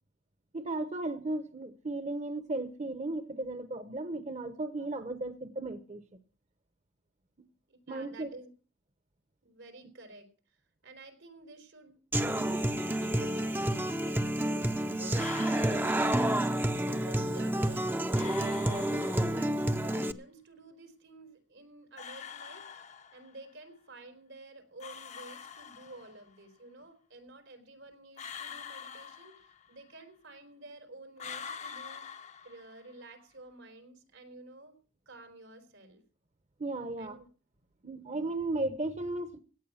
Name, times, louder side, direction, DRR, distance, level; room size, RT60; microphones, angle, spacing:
voice 1, 0.5-6.0 7.9-8.3 9.8-9.9 36.6-37.2 37.8-39.4, right 2 dB, 40° right, 0.9 m, -35 dB
voice 2, 7.7-8.5 9.4-12.0 13.0-16.3 16.8-22.7 23.1-32.1 32.4-34.8 35.1-36.0 37.0-37.3, right 2 dB, 90° right, 4.0 m, -51 dB
Human voice / Acoustic guitar, 12.1-20.1, right 1 dB, 10° right, 0.6 m, -29 dB
sound 1, 15.1-16.6 18.1-19.6 22.0-23.5 24.8-26.3 28.2-29.9 31.2-33.0, left 7 dB, 40° left, 0.7 m, -45 dB
17.0 x 9.3 x 5.7 m
head